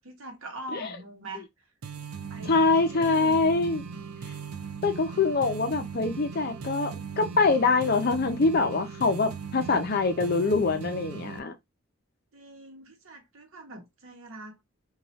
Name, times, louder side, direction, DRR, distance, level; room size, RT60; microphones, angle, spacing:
voice 1, 0.0-1.5 2.3-3.4 12.3-14.6, right 2 dB, 70° right, 0.9 m, -43 dB
sound 1, 1.8-11.4, right 6 dB, 90° right, 0.5 m, -38 dB
voice 2, 2.5-3.8 4.8-11.6, left 3 dB, 45° left, 0.5 m, -24 dB
3.0 x 2.3 x 2.7 m
head